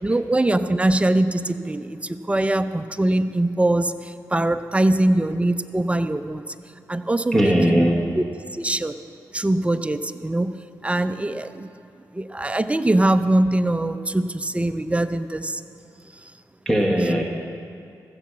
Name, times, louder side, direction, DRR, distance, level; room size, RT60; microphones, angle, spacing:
voice 1, 0.0-6.4 6.9-7.8 8.1-8.2 8.5-9.0 9.3-10.6 10.8-11.7 12.1-15.6, right 1 dB, 15° right, 10 dB, 0.6 m, -22 dB
voice 2, 7.3-8.2 16.6-17.2, equal, 5° left, 0 dB, 1.4 m, -19 dB
14.5 x 7.0 x 7.5 m, 2.4 s
supercardioid pair, 45°, 8 cm